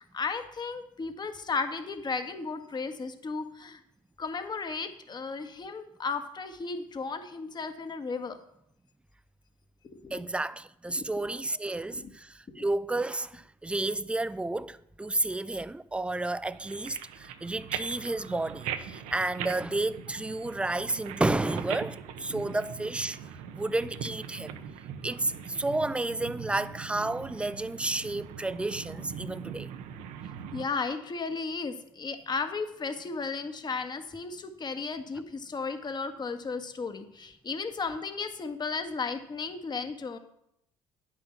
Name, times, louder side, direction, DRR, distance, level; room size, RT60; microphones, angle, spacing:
voice 1, 0.0-3.8 4.2-8.4 9.9-10.2 11.0-11.1 11.9-12.1 12.6-12.7 22.3-22.4 30.5-40.2, left 4 dB, 35° left, 1.5 m, -34 dB
voice 2, 10.1-23.2 23.5-24.6 25.0-29.7, right 2 dB, 10° right, 0.5 m, -31 dB
sound 1, 16.5-30.7, right 8 dB, 70° right, 0.9 m, -41 dB
10.0 x 6.3 x 5.8 m
hypercardioid pair, 60°, 13 cm